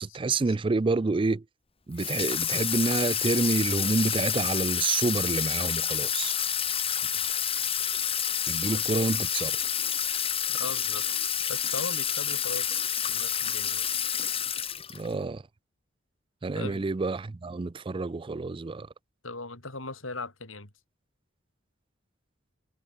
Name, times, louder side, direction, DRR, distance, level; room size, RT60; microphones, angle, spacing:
voice 1, 0.0-1.4 1.9-6.3 8.5-9.9 14.9-15.4 16.4-18.9, right 3 dB, 25° right, 0.4 m, -28 dB
Water tap faucet / Sink (filling or washing), 2.0-15.1, left 9 dB, 30° left, 1.9 m, -29 dB
voice 2, 10.5-11.0 11.5-13.9 16.5-16.9 19.2-20.7, left 3 dB, 85° left, 6.6 m, -39 dB
head